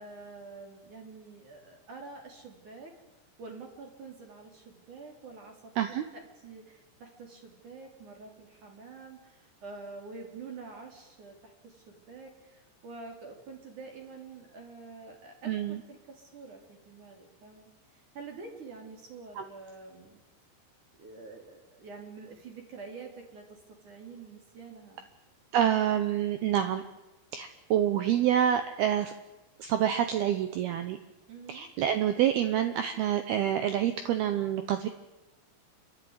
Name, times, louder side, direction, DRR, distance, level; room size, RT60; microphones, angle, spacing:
voice 1, 0.0-2.9 3.4-20.1 21.0-23.6 23.8-25.1 31.3-31.7, right 4 dB, 40° right, 2 dB, 4.1 m, -47 dB
voice 2, 15.5-15.8 19.4-19.5 25.5-26.8 27.3-29.1 29.6-31.0 31.5-34.9, right 10 dB, 90° right, 9 dB, 2.2 m, -27 dB
29.5 x 12.5 x 9.6 m, 1.0 s
omnidirectional pair, 6.0 m